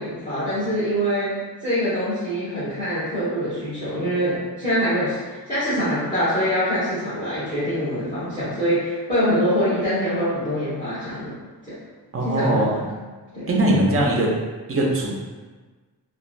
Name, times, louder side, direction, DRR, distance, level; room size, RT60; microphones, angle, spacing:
voice 1, 0.0-1.4 1.6-11.4 11.7-11.8 12.2-12.9 13.3-13.5, equal, 20° left, -16 dB, 1.3 m, -24 dB
voice 2, 12.1-12.7 13.5-14.3 14.7-15.2, right 1 dB, 35° right, -2 dB, 0.5 m, -20 dB
3.1 x 2.3 x 2.5 m, 1.4 s
wide cardioid pair, 170°, 38 cm